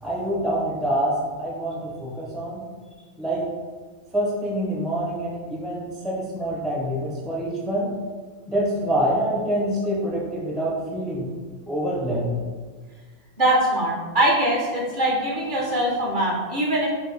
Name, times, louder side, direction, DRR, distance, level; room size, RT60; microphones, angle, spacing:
voice 1, 0.0-2.6 3.2-3.5 4.1-7.9 8.5-11.3 11.7-12.4, right 1 dB, ahead, -4 dB, 0.5 m, -26 dB
voice 2, 13.4-16.9, right 1 dB, 50° right, -3 dB, 0.8 m, -22 dB
4.5 x 2.6 x 3.1 m, 1.5 s
omnidirectional pair, 1.1 m